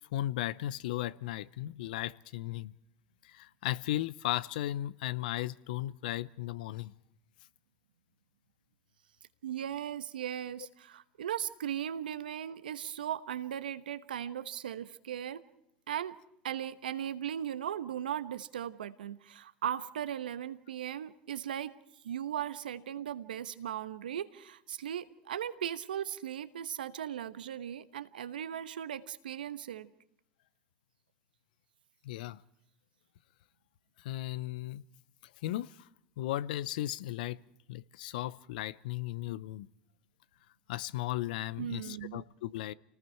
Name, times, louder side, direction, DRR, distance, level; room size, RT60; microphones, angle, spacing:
voice 1, 0.1-2.7 3.2-6.9 32.0-32.4 34.0-34.8 35.4-35.9 36.2-37.4 37.7-39.7 40.7-42.7, left 14 dB, 75° left, 0.7 m, -36 dB
voice 2, 9.4-15.4 15.9-16.2 16.4-21.7 22.0-29.9 41.6-42.2, right 10 dB, 85° right, 1.1 m, -38 dB
29.0 x 19.5 x 4.6 m
hypercardioid pair, 85°, 5 cm